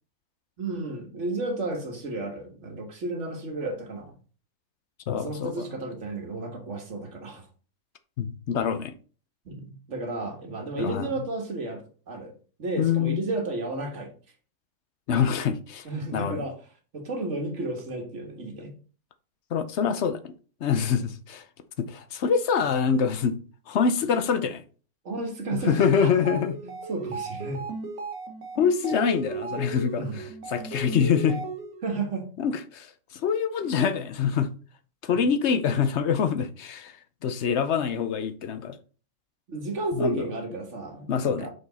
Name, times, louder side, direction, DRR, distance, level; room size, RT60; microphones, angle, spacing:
voice 1, 0.6-4.1 5.1-7.5 9.5-11.8 12.1-12.3 12.6-14.1 15.8-16.6 16.9-18.7 20.9-21.0 25.1-26.1 26.6-27.6 30.0-30.2 31.8-32.3 35.1-35.3 39.5-41.5, right 2 dB, 55° right, 1.9 m, -32 dB
voice 2, 5.1-5.7 8.2-8.9 10.8-11.1 12.8-13.2 15.1-15.9 16.1-16.4 19.5-20.3 20.6-21.4 21.8-23.4 23.7-24.6 25.5-26.6 28.6-31.4 32.4-34.5 35.0-36.9 37.2-38.8 39.9-40.2 41.1-41.5, left 7 dB, 60° left, 0.9 m, -25 dB
sound 1, 26.1-31.9, right 3 dB, 75° right, 1.6 m, -35 dB
6.3 x 5.2 x 4.0 m
omnidirectional pair, 1.5 m